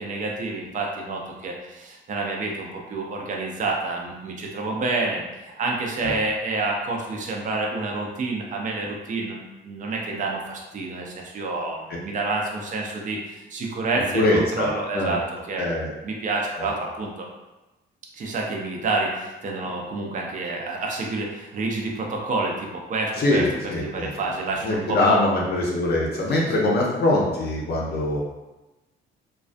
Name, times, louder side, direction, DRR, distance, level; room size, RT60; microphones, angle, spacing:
voice 1, 0.0-9.4 9.6-15.7 16.0-17.3 18.1-25.2 26.4-26.5, right 3 dB, 40° right, -1 dB, 0.5 m, -28 dB
voice 2, 14.1-15.1 15.6-15.9 16.6-16.7 23.2-24.1 24.6-28.2, left 2 dB, 55° left, -3 dB, 0.5 m, -23 dB
2.3 x 2.2 x 2.5 m, 1.1 s
cardioid pair, 90°, 20 cm